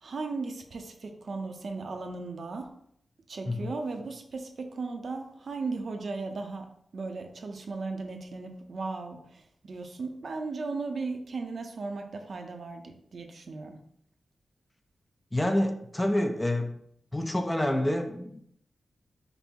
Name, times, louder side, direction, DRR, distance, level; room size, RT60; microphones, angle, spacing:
voice 1, 0.0-2.7 3.3-6.7 6.9-13.8, right 3 dB, 55° right, 4 dB, 0.6 m, -36 dB
voice 2, 15.3-16.8 17.1-18.5, left 1 dB, 10° left, 6 dB, 0.3 m, -28 dB
5.2 x 2.0 x 4.4 m, 0.70 s
wide cardioid pair, 145°, 0 cm